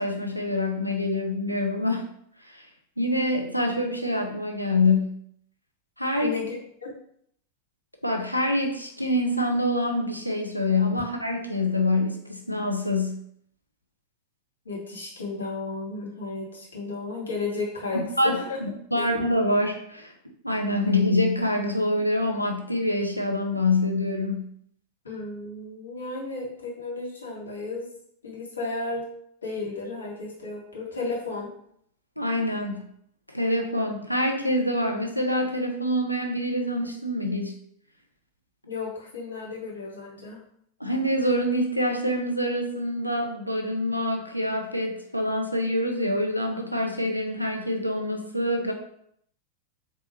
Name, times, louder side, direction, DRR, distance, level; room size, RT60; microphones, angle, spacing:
voice 1, 0.0-2.1 2.4-2.7 3.0-5.2 6.0-6.3 8.0-13.2 17.9-20.1 20.4-24.5 32.2-32.8 33.3-37.5 40.8-48.7, left 1 dB, 90° left, 2 dB, 0.4 m, -26 dB
voice 2, 6.2-6.6 6.8-6.9 14.6-18.6 19.0-19.1 25.0-27.9 28.2-29.1 29.4-31.5 38.7-40.4, left 3 dB, 70° left, -3 dB, 1.0 m, -33 dB
4.0 x 2.3 x 2.8 m, 0.68 s
figure-of-eight pair, 90°, 0 cm